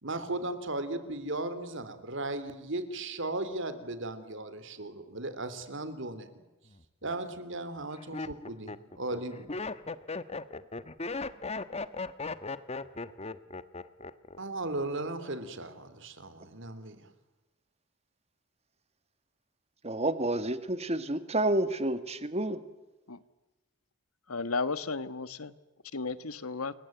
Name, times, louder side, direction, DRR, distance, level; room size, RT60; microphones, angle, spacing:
voice 1, 0.0-6.3 7.0-9.5 14.4-17.1, right 2 dB, 60° right, 3.3 m, -36 dB
Laughter, 6.7-7.1 7.8-14.4 14.6-15.2, left 3 dB, 30° left, 1.1 m, -37 dB
voice 2, 19.8-22.6, right 1 dB, 30° right, 1.9 m, -29 dB
voice 3, 24.3-25.5 25.9-26.7, left 4 dB, 90° left, 1.4 m, -33 dB
28.5 x 22.5 x 9.2 m
head